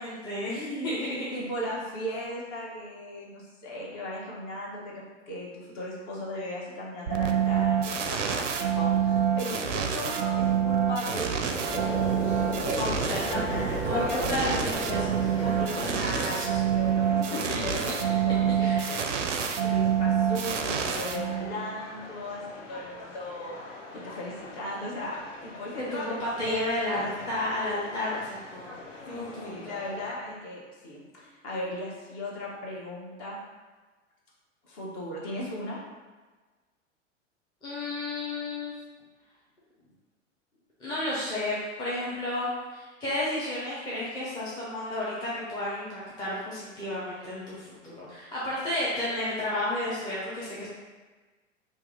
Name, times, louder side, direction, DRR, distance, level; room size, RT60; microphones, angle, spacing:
voice 1, 0.0-1.4 12.8-16.6 17.5-17.8 18.6-19.0 25.8-28.8 29.1-29.6 37.6-38.7 40.8-50.7, left 1 dB, 10° left, -8 dB, 0.7 m, -32 dB
voice 2, 0.5-0.9 1.3-4.9 5.3-13.2 13.6-14.6 15.6-19.2 19.6-22.4 22.7-26.6 29.1-33.4 34.6-35.8, left 1 dB, 35° left, -4 dB, 0.9 m, -37 dB
sound 1, 7.1-21.7, right 8 dB, 70° right, 0.5 m, -27 dB
sound 2, 11.7-16.5, left 1 dB, 55° left, 1.4 m, -35 dB
sound 3, 13.4-30.1, left 3 dB, 70° left, 0.7 m, -46 dB
2.8 x 2.5 x 3.8 m, 1.3 s
figure-of-eight pair, 95°, 38 cm